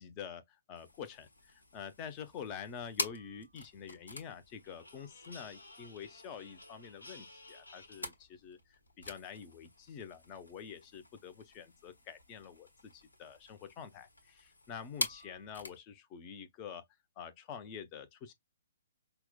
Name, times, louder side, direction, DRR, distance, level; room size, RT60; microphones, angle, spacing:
voice 1, 0.0-16.9 17.2-18.3, left 7 dB, 25° left, 0.7 m, -47 dB
sound 1, 0.8-15.8, left 2 dB, 70° left, 1.2 m, -46 dB
5.7 x 2.1 x 2.2 m
figure-of-eight pair, 125°, 0 cm